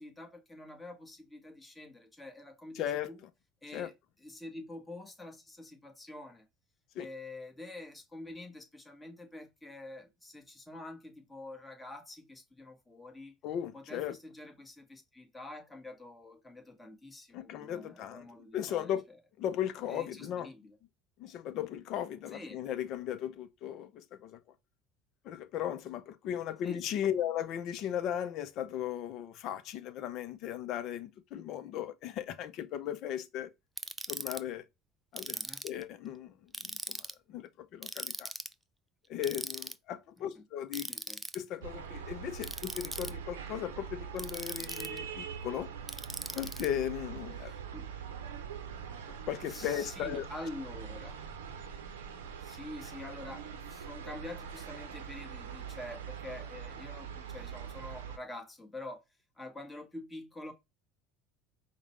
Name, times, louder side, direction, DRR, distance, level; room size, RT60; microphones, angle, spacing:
voice 1, 0.0-3.2 3.6-3.9 4.2-6.4 7.0-13.3 13.7-18.9 19.9-20.7 22.3-22.6 26.6-27.0 35.3-35.7 40.2-40.4 40.9-41.2 47.4-47.9 49.5-51.2 52.4-59.0 59.4-60.5, left 2 dB, 10° left, 1.2 m, -47 dB
voice 2, 2.8-3.1 3.7-3.9 6.9-7.1 13.4-14.2 17.3-18.3 18.5-19.1 19.4-20.5 21.2-24.4 25.2-33.5 34.1-34.6 35.1-35.4 35.6-36.3 36.6-38.3 39.1-40.9 41.3-45.7 46.3-47.5 49.3-50.3, left 10 dB, 55° left, 0.5 m, -37 dB
Ratchet pawl, 33.8-34.4 35.2-35.8 36.5-37.1 37.8-38.5 39.2-39.7 40.7-41.4 42.4-43.1 44.2-45.0 45.9-46.7, right 1 dB, 5° right, 0.3 m, -39 dB
sound 1, 41.6-58.2, right 7 dB, 80° right, 0.6 m, -43 dB
4.9 x 2.1 x 3.1 m
hypercardioid pair, 75°, 0 cm